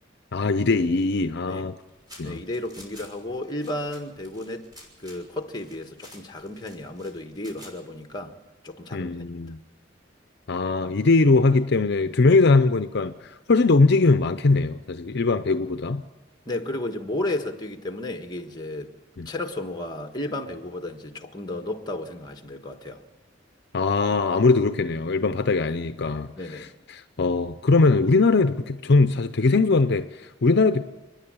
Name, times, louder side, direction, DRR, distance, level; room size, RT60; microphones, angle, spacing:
voice 1, 0.3-1.7 2.2-2.4 8.9-9.6 10.5-16.0 19.2-19.3 23.7-26.7 26.9-30.8, left 3 dB, 60° left, 0.7 m, -21 dB
sound 1, 1.8-8.0, left 1 dB, 20° right, 6.2 m, -49 dB
voice 2, 2.2-4.7 5.0-8.4 8.6-9.1 16.4-18.9 19.2-23.0 26.3-26.7, left 1 dB, 20° left, 1.5 m, -33 dB
30.0 x 10.5 x 8.9 m
head